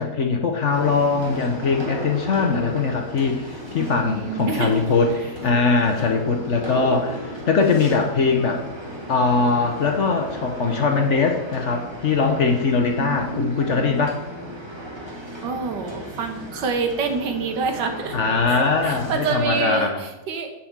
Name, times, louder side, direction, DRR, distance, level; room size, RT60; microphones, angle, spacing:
voice 1, 0.0-8.6 9.1-14.2 18.1-20.0, left 4 dB, 55° left, 3 dB, 1.0 m, -21 dB
sound 1, 0.7-19.5, equal, 15° right, 1.4 m, -35 dB
voice 2, 3.8-4.9 13.0-13.9 15.4-18.2 18.5-20.5, right 5 dB, 80° right, 6 dB, 1.7 m, -27 dB
8.2 x 4.3 x 7.2 m, 0.98 s
omnidirectional pair, 1.9 m